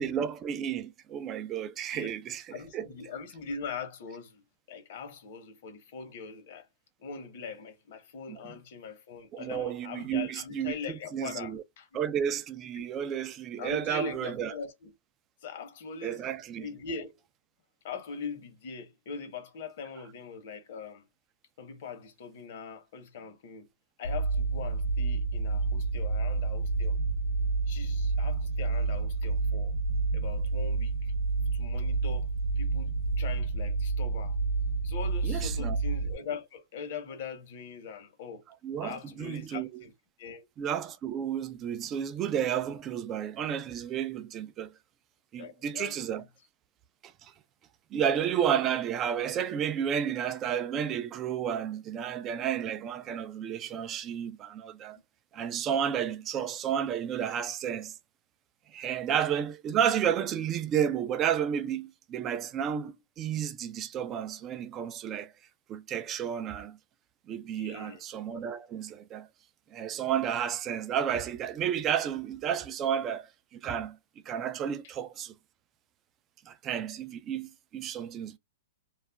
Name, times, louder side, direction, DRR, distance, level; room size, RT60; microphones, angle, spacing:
voice 1, 0.0-2.9 8.3-8.4 9.3-11.6 11.9-14.5 16.0-16.7 35.2-35.8 38.6-39.8 40.6-44.7 45.3-46.2 47.0-47.3 47.9-55.0 55.3-57.9 58.7-65.3 65.7-66.8 67.3-69.3 69.7-74.0 74.3-75.3 76.5-78.4, right 9 dB, 25° right, 0.4 m, -32 dB
voice 2, 2.5-4.4 4.7-6.7 7.0-11.9 12.8-12.9 13.6-14.9 15.4-16.2 16.6-17.2 17.8-21.0 21.6-23.7 24.0-27.0 27.7-29.7 30.1-31.1 31.5-32.3 32.6-34.4 34.8-38.4 38.8-39.9 40.2-40.4 45.4-46.2 67.5-68.0, left 5 dB, 55° left, 0.9 m, -41 dB
sound 1, 24.0-36.1, right 3 dB, 80° left, 0.6 m, -29 dB
2.4 x 2.1 x 3.3 m
hypercardioid pair, 135°, 0 cm